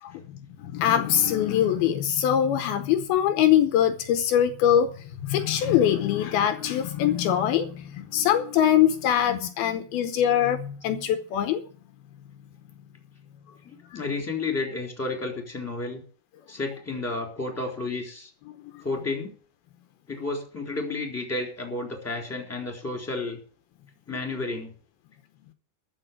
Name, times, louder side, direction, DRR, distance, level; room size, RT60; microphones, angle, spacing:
voice 1, 0.0-11.6 13.9-14.0 18.5-18.8, left 10 dB, 75° left, 9 dB, 2.7 m, -23 dB
voice 2, 13.6-16.0 16.5-18.3 18.8-19.3 20.1-23.4 24.1-24.7, left 3 dB, 5° left, 2 dB, 3.2 m, -31 dB
13.5 x 6.2 x 9.0 m, 0.43 s
omnidirectional pair, 4.5 m